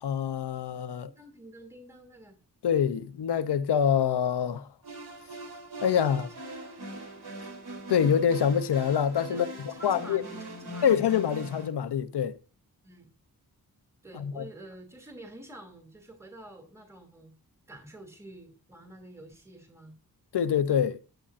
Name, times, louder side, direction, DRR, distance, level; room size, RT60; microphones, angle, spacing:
voice 1, 0.0-1.1 2.6-4.7 5.8-6.3 7.9-9.5 9.8-10.2 10.8-12.4 14.2-14.4 20.3-21.0, left 8 dB, 90° left, 0.7 m, -25 dB
voice 2, 1.0-2.4 5.8-6.3 9.3-11.0 12.8-13.1 14.0-17.3 17.7-19.9, right 1 dB, 5° right, 2.6 m, -48 dB
sound 1, 4.8-11.7, right 1 dB, 70° right, 3.5 m, -41 dB
13.0 x 8.9 x 2.5 m
cardioid pair, 65°, 39 cm